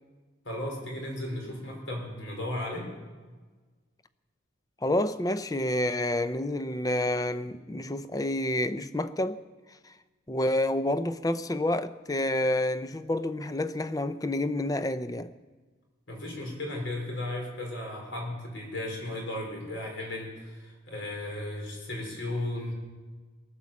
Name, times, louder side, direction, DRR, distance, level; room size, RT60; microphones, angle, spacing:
voice 1, 0.4-2.9 16.1-22.7, left 1 dB, 75° left, 4.4 m, -35 dB
voice 2, 4.8-9.4 9.8-9.9 10.3-15.3, left 1 dB, 20° left, 0.5 m, -29 dB
19.0 x 10.0 x 7.3 m
head